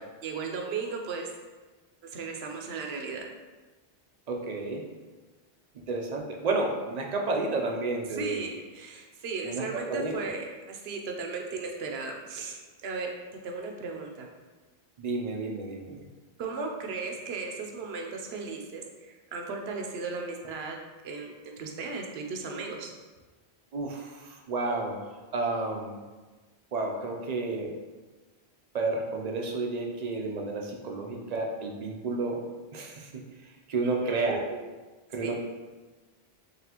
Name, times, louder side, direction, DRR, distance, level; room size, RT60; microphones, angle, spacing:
voice 1, 0.2-1.3 2.0-3.2 8.1-13.1 13.4-14.3 16.4-20.8 21.0-22.9 33.8-34.3 35.2-35.4, right 4 dB, 75° right, 2 dB, 0.9 m, -36 dB
voice 2, 4.3-4.8 5.9-8.4 9.4-10.1 15.0-16.0 23.7-25.0 25.3-26.0 26.7-27.7 28.7-32.4 32.7-33.1 33.7-34.6 35.1-35.4, right 3 dB, 50° right, 1 dB, 0.5 m, -31 dB
4.0 x 3.2 x 2.9 m, 1.3 s
omnidirectional pair, 1.1 m